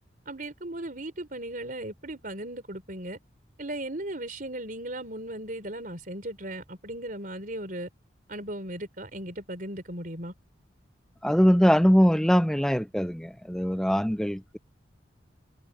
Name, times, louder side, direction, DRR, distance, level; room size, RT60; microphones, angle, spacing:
voice 1, 0.3-3.2 3.6-7.9 8.3-10.3, right 1 dB, 45° right, 4.5 m, -37 dB
voice 2, 11.2-14.6, equal, 5° left, 0.5 m, -22 dB
head